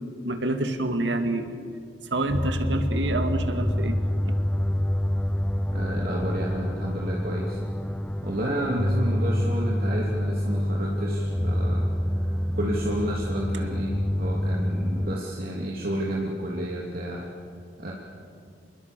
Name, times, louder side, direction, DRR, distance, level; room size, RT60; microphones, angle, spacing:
voice 1, 0.0-1.5 2.1-4.0 4.3-4.4, right 1 dB, 80° right, 6 dB, 2.1 m, -27 dB
sound 1, 2.3-15.2, equal, 5° left, 0.5 m, -27 dB
voice 2, 5.7-7.6 8.2-11.8 12.5-13.9 14.2-17.3 17.8-17.9, right 1 dB, 55° right, -3 dB, 2.9 m, -30 dB
27.5 x 21.0 x 6.9 m, 2.2 s
head